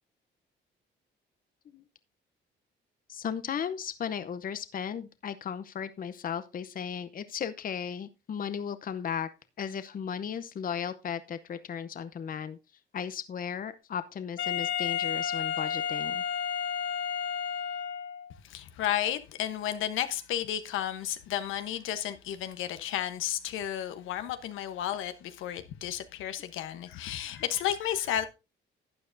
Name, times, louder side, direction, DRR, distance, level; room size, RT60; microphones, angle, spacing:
voice 1, 3.1-9.3 9.6-12.6 12.9-16.2, left 7 dB, 45° left, 0.7 m, -35 dB
Wind instrument woodwind instrument, 14.4-18.3, left 8 dB, 70° left, 1.9 m, -32 dB
voice 2, 18.4-28.3, left 11 dB, 90° left, 1.0 m, -32 dB
12.0 x 8.8 x 2.6 m
cardioid pair, 90°, 20 cm